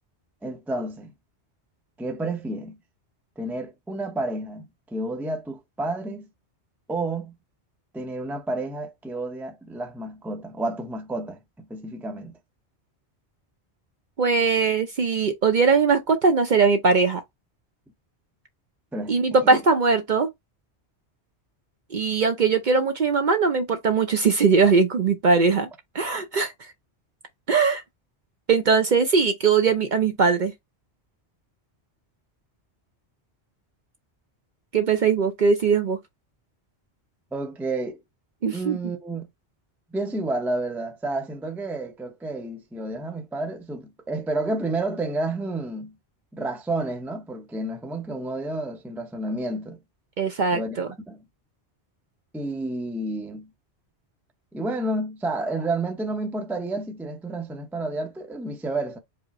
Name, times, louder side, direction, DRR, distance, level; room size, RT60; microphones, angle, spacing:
voice 1, 0.4-1.1 2.0-2.8 3.4-6.2 6.9-7.4 7.9-12.4 18.9-19.2 19.4-19.6 37.3-38.0 38.5-39.3 39.9-45.9 46.3-49.8 50.5-51.2 52.3-53.5 54.5-59.0, right 2 dB, ahead, 0.4 m, -30 dB
voice 2, 14.2-17.2 19.1-20.3 21.9-25.7 25.9-26.5 27.5-27.8 28.5-30.5 34.7-36.0 38.4-38.9 50.2-50.9, right 5 dB, 50° right, 0.6 m, -20 dB
4.8 x 2.1 x 4.1 m
omnidirectional pair, 1.1 m